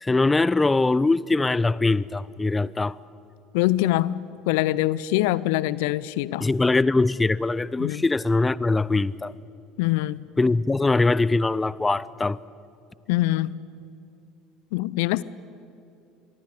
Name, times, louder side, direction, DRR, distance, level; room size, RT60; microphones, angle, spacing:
voice 1, 0.0-3.0 6.4-9.3 10.4-12.4, left 3 dB, 15° left, 0.5 m, -22 dB
voice 2, 3.5-4.2 4.5-6.5 7.8-8.0 9.8-10.2 13.1-13.5 14.7-15.2, left 16 dB, 65° left, 0.5 m, -23 dB
25.5 x 22.5 x 8.4 m
figure-of-eight pair, 65°, 0 cm